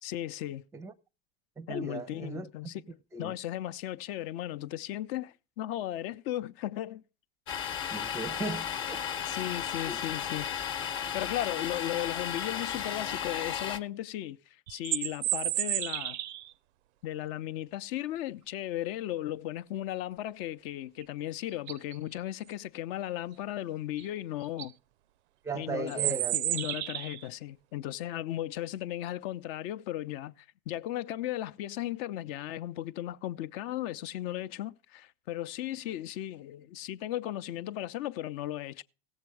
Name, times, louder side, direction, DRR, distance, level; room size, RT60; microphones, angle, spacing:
voice 1, 0.0-0.6 1.7-2.8 3.2-7.0 9.3-10.5 11.1-16.2 17.0-24.7 25.5-38.8, left 13 dB, 60° left, 0.6 m, -36 dB
voice 2, 1.6-2.7 3.1-3.3 7.9-9.1 9.4-9.5 9.9-10.1 11.0-11.1 25.4-26.4, right 3 dB, 10° right, 0.5 m, -37 dB
Domestic sounds home sounds, 7.5-13.8, left 8 dB, 40° left, 1.0 m, -34 dB
sound 1, 14.7-16.5 21.0-21.1 21.5-21.9 24.0-24.1 24.4-24.7 25.9-27.3, right 16 dB, 80° right, 0.5 m, -32 dB
16.5 x 7.4 x 4.7 m
hypercardioid pair, 100°, 32 cm